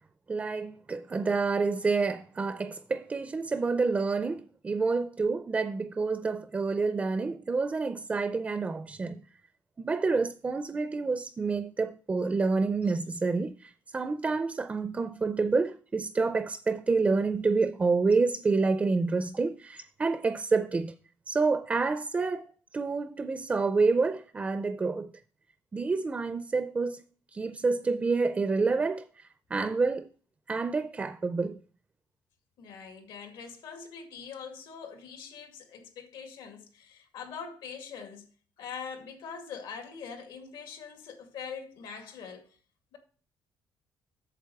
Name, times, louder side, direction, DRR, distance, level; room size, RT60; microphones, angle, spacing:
voice 1, 0.3-9.2 9.8-20.9 21.3-25.1 25.7-27.0 27.3-30.1 30.5-31.6, right 4 dB, 20° right, 0.4 m, -28 dB
voice 2, 32.6-38.2 38.6-42.6 42.9-43.0, left 6 dB, 85° left, 2.2 m, -43 dB
8.3 x 7.0 x 4.7 m
cardioid pair, 165°, 8 cm